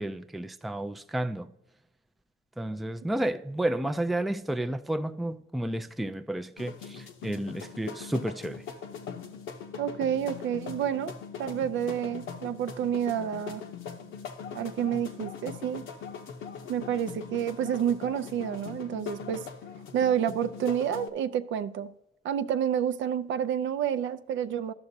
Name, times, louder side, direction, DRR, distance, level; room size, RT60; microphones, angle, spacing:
voice 1, 0.0-1.5 2.6-8.6, right 1 dB, ahead, 0.3 m, -31 dB
sound 1, 6.6-21.1, left 6 dB, 80° left, 0.8 m, -41 dB
voice 2, 9.8-11.1 11.4-13.6 14.5-15.8 16.7-19.5 19.9-21.9 22.2-24.7, right 9 dB, 70° right, 0.5 m, -29 dB
13.0 x 6.0 x 2.7 m
cardioid pair, 90°, 20 cm